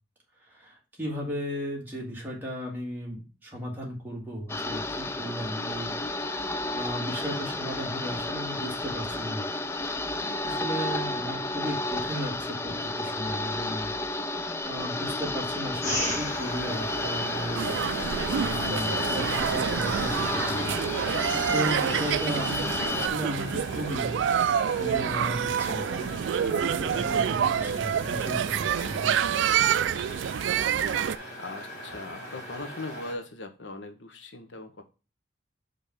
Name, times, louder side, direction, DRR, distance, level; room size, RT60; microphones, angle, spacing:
voice 1, 0.5-9.5 10.4-13.9 14.3-20.8 21.5-29.1, equal, 10° right, -3 dB, 1.9 m, -36 dB
sound 1, 4.5-23.1, left 2 dB, 15° left, 0.3 m, -32 dB
sound 2, 15.8-33.1, equal, 35° left, 2.2 m, -38 dB
sound 3, 17.6-31.2, right 8 dB, 85° right, 0.3 m, -27 dB
voice 2, 31.4-34.8, left 2 dB, 85° left, 7 dB, 1.0 m, -40 dB
5.2 x 3.5 x 5.7 m, 0.33 s
head